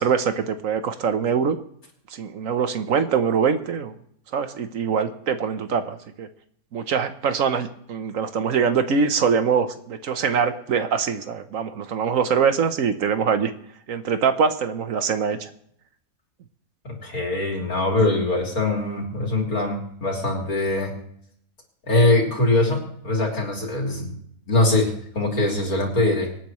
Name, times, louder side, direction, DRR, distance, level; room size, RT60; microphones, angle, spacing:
voice 1, 0.0-1.6 2.1-3.9 4.3-6.3 6.7-13.5 13.9-15.5, right 6 dB, 70° right, 9 dB, 1.3 m, -23 dB
voice 2, 16.8-21.0 21.9-24.1 24.5-26.3, left 2 dB, 80° left, -1 dB, 3.7 m, -22 dB
25.0 x 9.4 x 3.1 m, 0.67 s
omnidirectional pair, 1.5 m